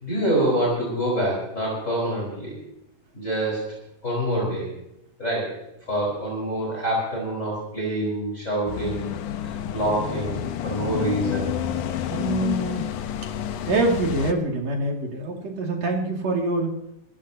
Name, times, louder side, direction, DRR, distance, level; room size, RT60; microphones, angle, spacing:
voice 1, 0.0-2.6 3.1-3.8 4.0-4.7 5.2-5.6 5.9-9.1 9.7-11.5, right 1 dB, 20° left, -4 dB, 5.1 m, -26 dB
sound 1, 8.7-14.3, left 10 dB, 90° left, 2.5 m, -29 dB
voice 2, 12.1-12.9 13.7-16.7, right 2 dB, 55° right, 0 dB, 3.6 m, -25 dB
24.5 x 14.5 x 2.9 m, 0.84 s
omnidirectional pair, 3.6 m